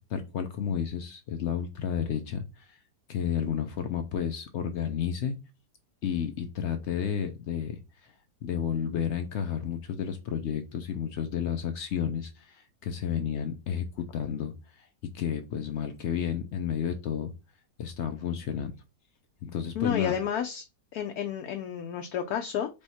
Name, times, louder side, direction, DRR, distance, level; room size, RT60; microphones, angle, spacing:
voice 1, 0.1-2.8 3.1-5.4 6.0-8.1 8.4-14.9 15.1-17.3 17.8-18.7 19.4-20.2, left 8 dB, 90° left, 7 dB, 0.6 m, -31 dB
voice 2, 19.7-20.6 20.9-22.8, left 8 dB, 70° left, 5 dB, 1.0 m, -31 dB
3.5 x 3.0 x 4.1 m, 0.27 s
omnidirectional pair, 1.9 m